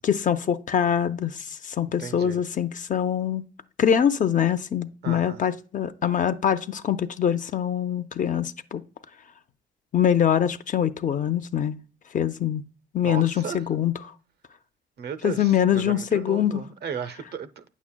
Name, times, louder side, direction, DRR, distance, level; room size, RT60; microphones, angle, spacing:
voice 1, 0.0-3.4 3.8-8.8 9.9-11.8 12.1-12.6 12.9-13.9 15.2-16.6, left 9 dB, 40° left, 0.4 m, -24 dB
voice 2, 2.0-2.4 5.0-5.4 13.0-13.7 15.0-17.6, right 7 dB, 55° right, 0.6 m, -35 dB
8.8 x 7.2 x 2.2 m
cardioid pair, 90°, 20 cm